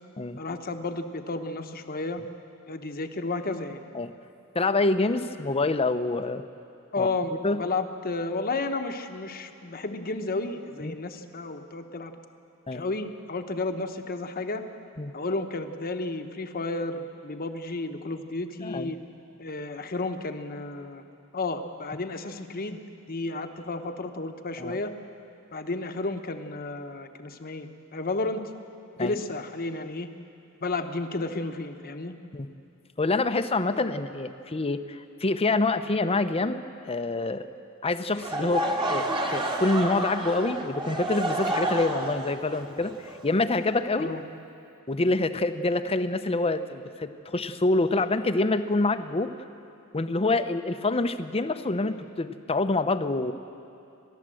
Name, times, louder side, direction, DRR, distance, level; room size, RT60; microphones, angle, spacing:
voice 1, 0.4-2.2 2.7-3.8 6.9-12.1 12.7-14.6 15.1-19.0 19.4-21.0 21.3-22.8 23.1-24.9 25.5-28.4 29.0-30.1 30.6-32.1 44.0-44.2 51.8-52.0, left 3 dB, 45° left, 7 dB, 1.1 m, -32 dB
voice 2, 4.5-6.4 7.0-7.1 7.4-7.6 10.8-11.0 12.7-12.8 15.0-15.1 18.6-18.9 24.6-24.8 29.0-29.1 32.3-32.5 33.0-37.5 37.8-39.1 39.3-42.9 43.2-44.1 44.9-49.3 49.9-53.3, left 2 dB, 25° left, 10 dB, 0.7 m, -26 dB
Laughter / Crowd, 38.1-44.0, right 1 dB, 25° right, 1.6 m, -30 dB
29.5 x 12.5 x 7.7 m, 2.6 s
head